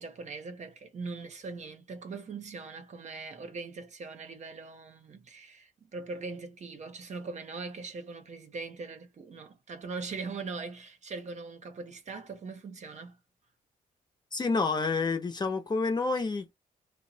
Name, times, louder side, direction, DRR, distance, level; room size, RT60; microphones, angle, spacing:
voice 1, 0.0-13.2, right 4 dB, 45° right, 0.7 m, -41 dB
voice 2, 14.3-16.5, left 4 dB, 25° left, 0.8 m, -29 dB
2.9 x 2.1 x 2.7 m
cardioid pair, 110°, 16 cm